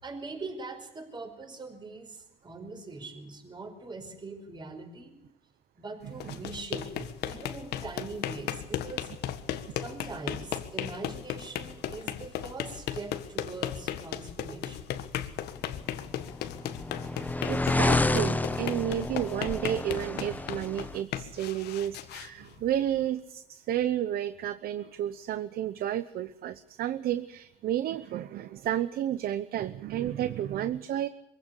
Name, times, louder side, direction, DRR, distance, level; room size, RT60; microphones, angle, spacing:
voice 1, 0.0-5.2 5.8-9.1 9.8-14.9, right 3 dB, 25° right, 4 dB, 5.2 m, -42 dB
voice 2, 6.0-6.4 17.0-31.1, right 11 dB, 65° right, 13 dB, 0.9 m, -32 dB
sound 1, 6.1-23.1, left 10 dB, 75° left, 1.7 m, -36 dB
sound 2, 16.0-21.0, left 2 dB, 10° left, 0.9 m, -29 dB
23.5 x 16.0 x 8.4 m, 0.90 s
cardioid pair, 110°, 17 cm